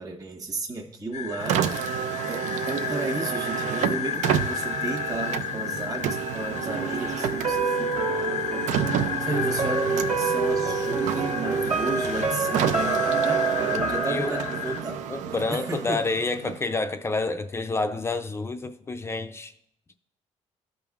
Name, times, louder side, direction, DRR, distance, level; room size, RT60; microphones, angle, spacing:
voice 1, 0.0-8.7 9.0-14.9 15.5-16.0, right 2 dB, 30° right, 1.2 m, -33 dB
sound 1, 1.1-14.8, left 9 dB, 65° left, 0.6 m, -32 dB
Car, 1.4-16.8, right 9 dB, 85° right, 0.4 m, -30 dB
sound 2, 6.7-15.6 16.0-16.1, right 5 dB, 60° right, 1.4 m, -28 dB
voice 2, 15.1-19.5, left 3 dB, 20° left, 0.4 m, -29 dB
15.5 x 5.3 x 2.4 m
cardioid pair, 120°, 12 cm